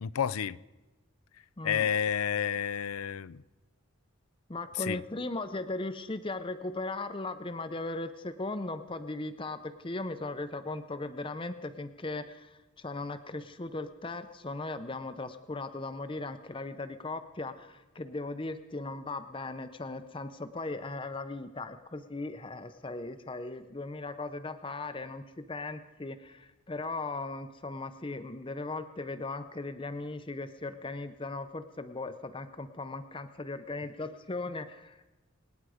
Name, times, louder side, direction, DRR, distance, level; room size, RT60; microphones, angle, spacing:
voice 1, 0.0-0.6 1.6-3.4 4.8-5.0, left 8 dB, 90° left, 0.5 m, -30 dB
voice 2, 4.5-35.0, left 2 dB, 25° left, 0.6 m, -38 dB
26.5 x 9.5 x 5.0 m
head